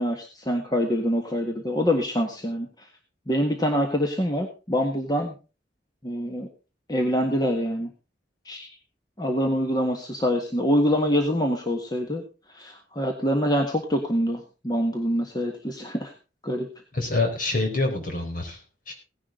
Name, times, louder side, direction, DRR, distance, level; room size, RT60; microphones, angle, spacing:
voice 1, 0.0-2.7 3.3-5.3 6.0-6.5 6.9-7.9 8.4-8.7 9.2-12.2 12.5-16.1 16.4-16.7, equal, 25° left, 3 dB, 1.6 m, -25 dB
voice 2, 16.9-18.6 18.9-19.0, left 2 dB, 50° left, 2 dB, 4.7 m, -26 dB
17.0 x 11.0 x 3.9 m, 0.33 s
head